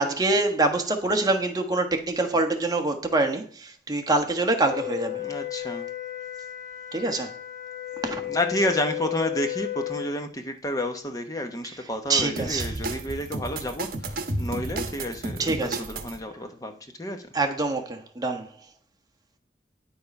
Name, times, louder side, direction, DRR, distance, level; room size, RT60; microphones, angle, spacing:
voice 1, 0.0-5.2 6.9-7.3 8.0-8.2 12.1-12.7 15.4-15.8 17.3-18.4, right 2 dB, 20° right, 1.3 m, -25 dB
Wind instrument woodwind instrument, 4.6-10.1, left 14 dB, 50° left, 1.3 m, -34 dB
voice 2, 5.2-5.9 8.2-17.2, left 1 dB, 20° left, 1.0 m, -30 dB
sound 1, 12.4-16.2, right 2 dB, 55° right, 1.3 m, -32 dB
10.0 x 6.8 x 5.3 m
head